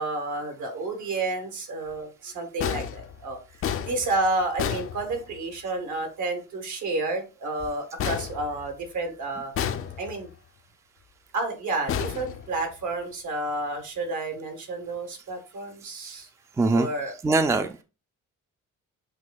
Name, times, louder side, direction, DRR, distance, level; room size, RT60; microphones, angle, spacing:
voice 1, 0.0-3.4 3.9-9.5 10.0-10.3 11.3-16.3 16.7-17.1, right 2 dB, 75° right, 1.5 m, -30 dB
sound 1, 2.6-5.6 8.0-9.1 9.5-10.4 11.9-13.0, left 9 dB, 45° left, 0.5 m, -32 dB
voice 2, 16.6-16.9 17.2-17.8, right 3 dB, 10° right, 0.4 m, -22 dB
7.7 x 2.7 x 2.3 m
cardioid pair, 90°, 30 cm